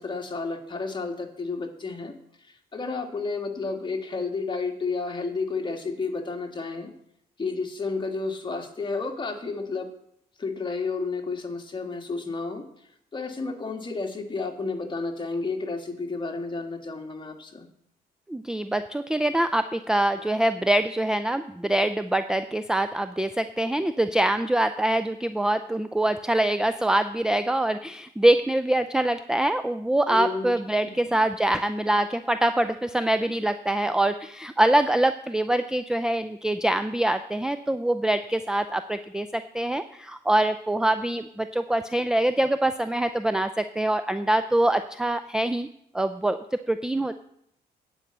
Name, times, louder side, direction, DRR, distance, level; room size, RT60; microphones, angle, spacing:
voice 1, 0.0-2.1 2.4-6.9 7.4-9.9 10.4-12.7 13.1-17.7 30.1-30.5 30.8-30.9, left 4 dB, 25° left, 3 dB, 1.8 m, -31 dB
voice 2, 18.3-45.7 45.9-46.4 46.7-47.1, right 1 dB, 5° right, 10 dB, 0.4 m, -24 dB
9.5 x 5.4 x 7.9 m, 0.73 s
cardioid pair, 80°, 17 cm